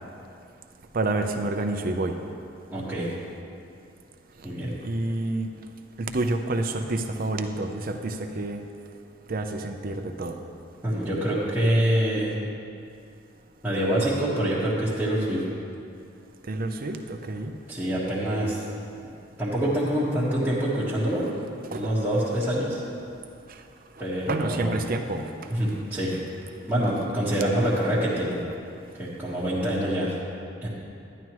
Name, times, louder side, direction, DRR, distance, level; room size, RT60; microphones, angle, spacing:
voice 1, 0.9-2.2 4.8-5.5 6.0-8.6 9.3-10.4 16.5-17.5 21.7-21.9 24.0-25.3, right 2 dB, 50° right, 6 dB, 0.6 m, -28 dB
voice 2, 2.7-3.1 4.4-4.7 10.8-12.4 13.6-15.4 17.7-18.6 19.4-21.3 21.7-22.8 24.0-24.7 25.5-26.1 26.7-28.4 29.0-30.1 30.6-30.7, right 1 dB, 10° right, -12 dB, 1.5 m, -25 dB
11.0 x 11.0 x 3.1 m, 2.6 s
head